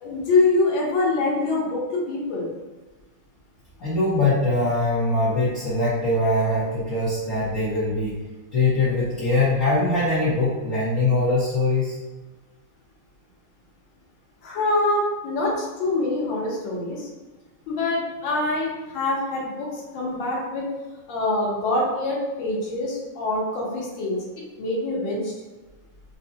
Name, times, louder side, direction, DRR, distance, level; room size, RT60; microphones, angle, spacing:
voice 1, 0.0-2.5 14.4-17.1 17.7-20.7 21.1-24.2 24.6-25.3, left 2 dB, 80° left, -4 dB, 1.7 m, -25 dB
voice 2, 3.8-8.2 8.5-12.0, left 2 dB, 50° left, -10 dB, 1.3 m, -22 dB
5.2 x 2.2 x 2.7 m, 1.2 s
omnidirectional pair, 2.1 m